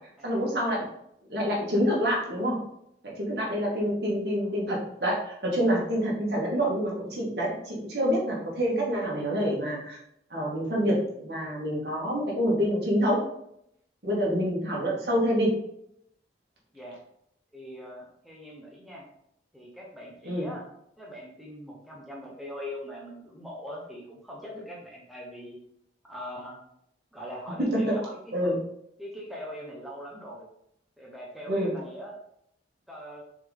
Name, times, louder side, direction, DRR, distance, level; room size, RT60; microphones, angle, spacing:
voice 1, 0.2-0.8 1.3-2.6 3.0-5.1 5.4-10.0 10.3-13.2 14.0-15.6 20.2-20.5 28.3-28.6 31.5-31.7, equal, 60° right, -4 dB, 2.2 m, -27 dB
voice 2, 17.5-19.0 19.5-20.6 21.0-25.6 26.0-26.6 27.1-28.6 29.0-30.5 31.0-32.2 32.9-33.2, equal, ahead, -4 dB, 1.0 m, -41 dB
6.5 x 4.0 x 3.6 m, 0.74 s
head